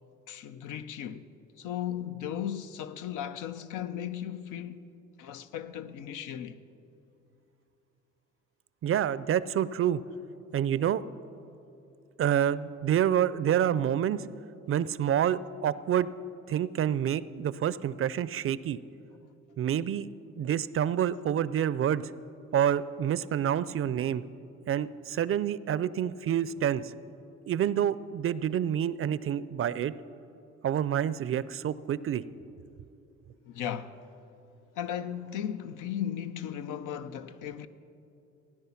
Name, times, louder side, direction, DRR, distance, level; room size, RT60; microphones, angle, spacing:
voice 1, 0.3-1.3 1.6-4.8 5.2-6.6 33.4-34.1 34.7-37.7, left 10 dB, 90° left, 0.6 m, -36 dB
voice 2, 8.8-10.0 10.5-11.0 12.2-14.3 14.7-16.1 16.5-18.8 19.6-20.1 20.4-22.1 22.5-24.2 24.7-26.9 27.5-29.9 30.6-32.2, right 10 dB, 45° right, 0.4 m, -28 dB
16.5 x 9.8 x 5.8 m
cardioid pair, 90°, 30 cm